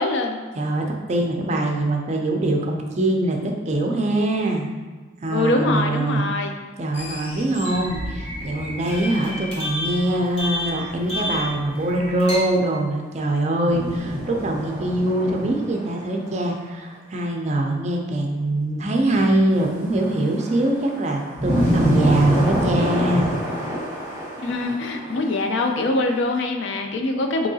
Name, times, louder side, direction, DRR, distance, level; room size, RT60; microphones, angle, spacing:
voice 1, 0.0-0.4 5.3-6.5 24.4-27.5, left 2 dB, 70° left, 4 dB, 0.4 m, -23 dB
voice 2, 0.6-4.7 5.2-6.2 6.8-23.3, right 1 dB, 35° right, 2 dB, 0.4 m, -23 dB
sound 1, 6.9-12.4, left 1 dB, 30° left, 0.9 m, -31 dB
sound 2, 13.7-16.0 16.4-16.5 19.1-25.4 25.6-25.7, equal, 10° right, 1.0 m, -26 dB
4.5 x 2.9 x 2.7 m, 1.4 s
head